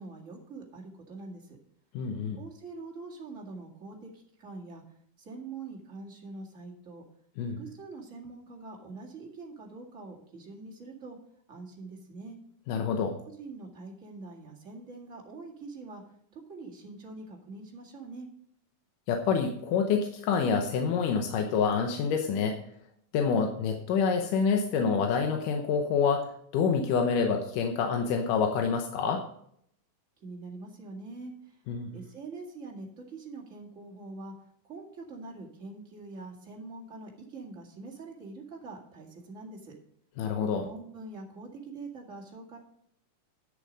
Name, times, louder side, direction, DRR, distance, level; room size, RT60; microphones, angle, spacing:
voice 1, 0.0-1.6 2.4-4.8 5.2-7.0 7.6-11.2 11.5-12.4 13.4-16.0 16.3-18.3 30.2-31.6 31.9-34.3 34.6-39.7 40.6-42.6, right 3 dB, 30° right, -2 dB, 1.7 m, -44 dB
voice 2, 1.9-2.4 7.4-7.6 12.7-13.2 19.1-22.6 23.1-29.2 31.7-31.9 40.2-40.7, left 6 dB, 70° left, 3 dB, 2.3 m, -27 dB
10.5 x 6.8 x 5.2 m, 0.68 s
omnidirectional pair, 4.1 m